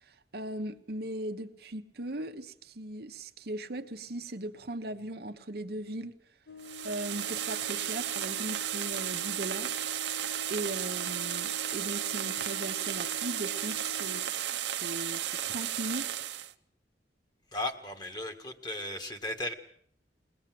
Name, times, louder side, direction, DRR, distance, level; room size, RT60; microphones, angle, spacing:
voice 1, 0.1-6.1 6.8-9.8 10.5-14.2 14.7-16.2, right 1 dB, 60° right, 6 dB, 1.1 m, -38 dB
sound 1, 6.5-14.2, left 4 dB, 65° left, 1.1 m, -47 dB
sound 2, 6.6-16.5, right 11 dB, 85° right, 0.9 m, -34 dB
voice 2, 17.5-19.5, left 1 dB, 25° left, 6 dB, 1.8 m, -36 dB
22.5 x 18.5 x 7.8 m, 0.64 s
head